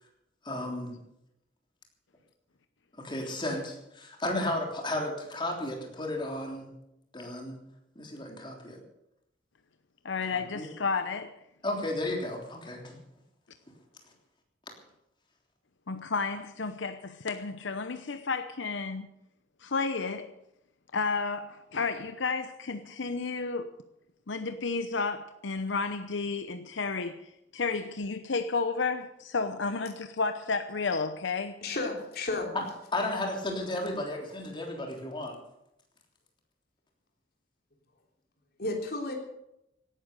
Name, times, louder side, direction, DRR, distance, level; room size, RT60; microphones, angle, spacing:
voice 1, 0.4-1.0 3.0-6.7 7.1-7.6 7.9-8.8 10.2-10.7 11.6-13.0 32.5-32.6 32.9-35.4, left 1 dB, 25° left, 1 dB, 3.4 m, -33 dB
voice 2, 10.0-11.4 15.9-19.1 19.6-20.3 20.9-23.7 24.3-27.2 27.5-31.6, left 4 dB, 80° left, 9 dB, 0.8 m, -32 dB
voice 3, 31.6-32.5 38.6-39.1, left 2 dB, 55° left, 1 dB, 3.5 m, -32 dB
18.0 x 11.0 x 6.8 m, 0.84 s
head